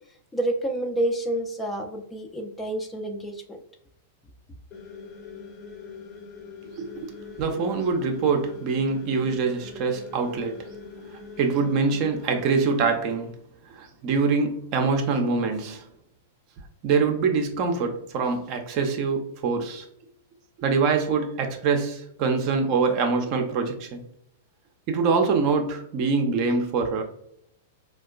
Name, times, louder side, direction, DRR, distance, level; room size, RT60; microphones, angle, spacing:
voice 1, 0.3-3.6, right 1 dB, 10° left, 0.5 m, -28 dB
sound 1, 4.7-13.0, left 5 dB, 35° left, 0.8 m, -43 dB
voice 2, 6.7-7.1 7.4-10.7 11.1-13.4 13.7-15.8 16.8-19.8 20.6-24.0 24.9-27.0, right 4 dB, 40° right, 0.6 m, -24 dB
4.2 x 2.3 x 2.3 m
figure-of-eight pair, 100°, 0 cm